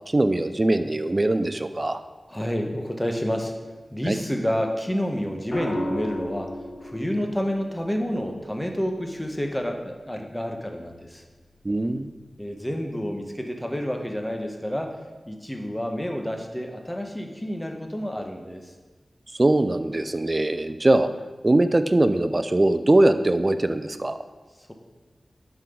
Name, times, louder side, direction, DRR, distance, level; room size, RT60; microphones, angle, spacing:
voice 1, 0.1-2.0 4.1-4.2 11.6-12.1 19.4-21.1 21.4-24.2, right 2 dB, 35° right, 10 dB, 0.6 m, -21 dB
voice 2, 2.3-3.5 3.9-11.2 12.4-15.0 15.3-18.7, equal, 10° left, 3 dB, 1.3 m, -29 dB
sound 1, 5.5-9.6 11.3-11.7, left 1 dB, 50° left, 2.6 m, -35 dB
10.5 x 5.9 x 3.9 m, 1.3 s
cardioid pair, 45°, 0 cm